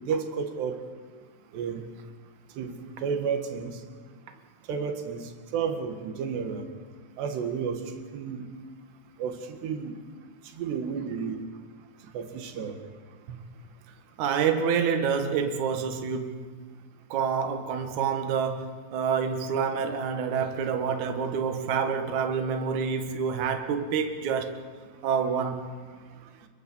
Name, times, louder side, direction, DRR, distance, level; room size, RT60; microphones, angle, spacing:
voice 1, 0.1-0.8 1.5-1.8 2.6-2.7 3.0-3.8 4.7-5.2 5.5-6.6 7.2-7.8 8.1-8.5 9.2-10.0 10.6-11.4 12.2-12.8, right 6 dB, 80° right, 3.9 m, -31 dB
voice 2, 14.2-16.5 17.1-24.6 25.0-25.7, right 6 dB, 55° right, 2.6 m, -27 dB
26.5 x 22.0 x 7.2 m
omnidirectional pair, 4.8 m